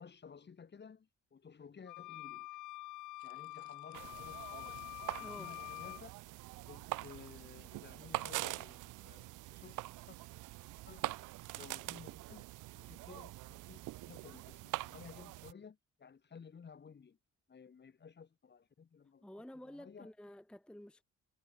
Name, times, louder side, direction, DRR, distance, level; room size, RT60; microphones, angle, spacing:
voice 1, 0.0-2.6 3.2-4.8 5.2-6.1 6.7-9.8 10.1-10.2 10.9-11.1 11.5-12.4 12.7-17.2 17.5-20.1, left 6 dB, 35° left, 1.6 m, -55 dB
sound 1, 1.9-6.0, left 18 dB, 80° left, 0.5 m, -47 dB
sound 2, 3.2-11.4, right 11 dB, 70° right, 2.4 m, -71 dB
sound 3, 3.9-15.5, right 19 dB, 90° right, 0.6 m, -44 dB
voice 2, 5.2-5.5 19.2-21.0, left 1 dB, 5° left, 0.8 m, -51 dB
cardioid pair, 90°, 30 cm